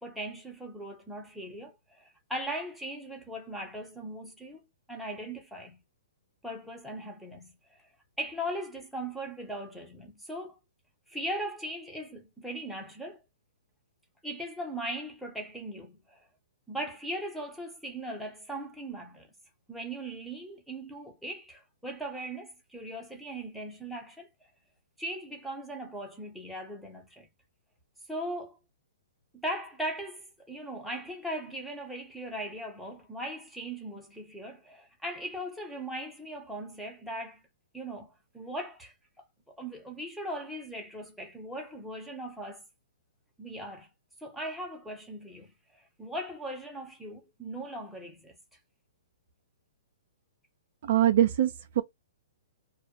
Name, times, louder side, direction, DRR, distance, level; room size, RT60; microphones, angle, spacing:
voice 1, 0.0-4.6 4.9-5.8 6.4-7.8 8.2-10.6 11.1-13.2 14.2-16.2 16.7-19.3 19.7-24.3 25.0-27.3 28.1-28.6 29.3-37.4 37.7-38.9 39.6-42.6 43.4-43.9 44.2-48.3, right 1 dB, ahead, 0.6 m, -39 dB
voice 2, 50.8-51.8, right 12 dB, 50° right, 0.4 m, -23 dB
2.2 x 2.1 x 2.8 m
hypercardioid pair, 160°, 0 cm